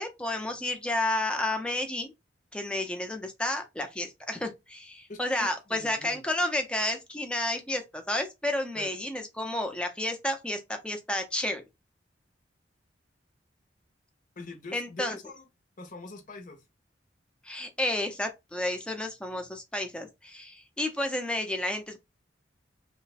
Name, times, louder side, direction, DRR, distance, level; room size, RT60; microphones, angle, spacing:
voice 1, 0.0-2.1 2.5-11.6 14.7-15.2 17.4-22.0, left 1 dB, 5° left, 0.6 m, -31 dB
voice 2, 5.1-6.2 8.7-9.0 14.4-15.5 15.8-16.7, left 2 dB, 45° left, 0.7 m, -44 dB
3.1 x 2.2 x 4.0 m
head